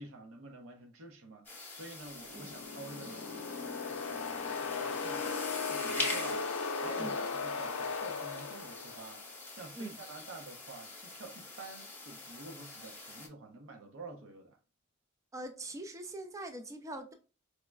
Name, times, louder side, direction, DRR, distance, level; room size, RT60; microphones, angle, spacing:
voice 1, 0.0-6.5 6.8-14.6, right 3 dB, 85° right, 0.7 m, -49 dB
sound 1, 1.4-13.3, left 2 dB, 10° left, 0.9 m, -44 dB
sound 2, 2.2-9.2, left 4 dB, 85° left, 0.4 m, -37 dB
voice 2, 15.3-17.1, right 1 dB, 15° right, 0.3 m, -42 dB
4.5 x 2.1 x 2.2 m
head